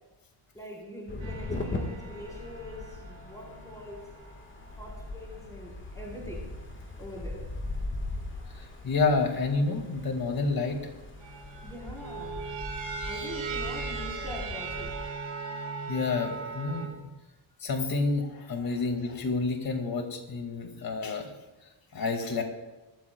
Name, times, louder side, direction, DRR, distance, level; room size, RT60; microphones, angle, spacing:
voice 1, 0.5-4.0 4.8-7.4 11.6-12.4 13.0-15.0, left 1 dB, 5° left, -4 dB, 4.2 m, -43 dB
sound 1, 1.1-15.1, left 2 dB, 25° left, 1.7 m, -39 dB
sound 2, 1.2-6.7 7.3-8.2 9.4-10.1 11.2-16.9, right 4 dB, 65° right, 3.6 m, -40 dB
voice 2, 8.5-10.8 15.9-16.9 17.6-21.3 21.9-22.4, left 3 dB, 45° left, 4 dB, 2.3 m, -29 dB
24.0 x 13.0 x 2.3 m, 1.1 s
cardioid pair, 130°, 49 cm